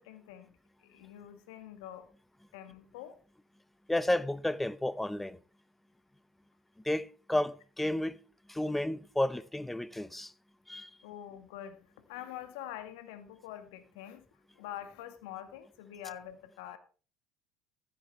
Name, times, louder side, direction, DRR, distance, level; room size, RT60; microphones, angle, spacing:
voice 1, 0.0-2.1 2.5-3.2 11.0-14.2 14.5-16.8, left 11 dB, 75° left, 1.5 m, -45 dB
voice 2, 3.9-5.4 6.8-8.2 8.5-10.3 10.7-10.9, left 1 dB, 5° left, 0.7 m, -32 dB
14.5 x 8.5 x 3.4 m
hypercardioid pair, 65°, 2 cm